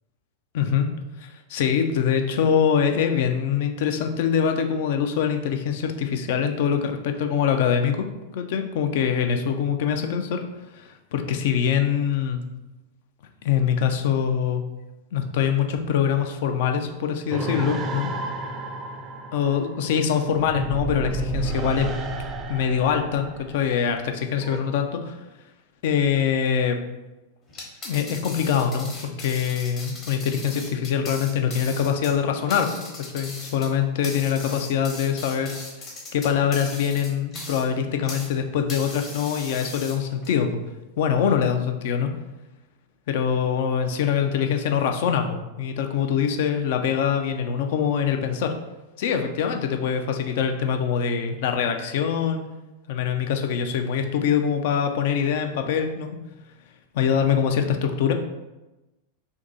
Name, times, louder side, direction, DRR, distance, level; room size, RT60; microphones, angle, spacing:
voice 1, 0.5-0.9 1.2-8.1 8.3-10.4 10.7-12.4 13.4-14.6 15.1-18.1 19.3-22.0 22.5-25.2 25.8-26.8 27.8-35.6 36.1-40.6 41.0-42.1 43.1-48.5 49.0-52.4 52.9-56.2 56.9-58.1, left 7 dB, 50° left, 6 dB, 0.4 m, -24 dB
sound 1, 17.3-24.6, right 2 dB, 25° right, 0.4 m, -31 dB
sound 2, 27.5-38.3 38.7-40.3, left 2 dB, 30° left, 1.0 m, -39 dB
3.5 x 2.7 x 3.9 m, 1.0 s
figure-of-eight pair, 90°, 0 cm